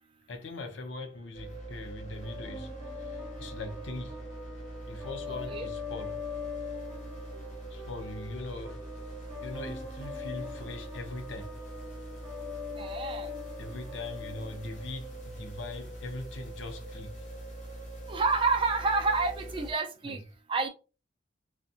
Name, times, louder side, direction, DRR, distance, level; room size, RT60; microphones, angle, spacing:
voice 1, 0.3-4.2 4.8-6.2 7.7-8.8 9.4-11.5 13.6-17.2 20.0-20.2, left 2 dB, 80° left, 0.6 m, -41 dB
sound 1, 1.3-19.7, right 1 dB, 40° left, 0.9 m, -43 dB
sound 2, 2.2-15.2, left 6 dB, 10° right, 1.3 m, -43 dB
voice 2, 12.8-13.3 18.1-20.2 20.5-20.7, right 4 dB, 30° right, 0.4 m, -28 dB
2.5 x 2.1 x 2.7 m
head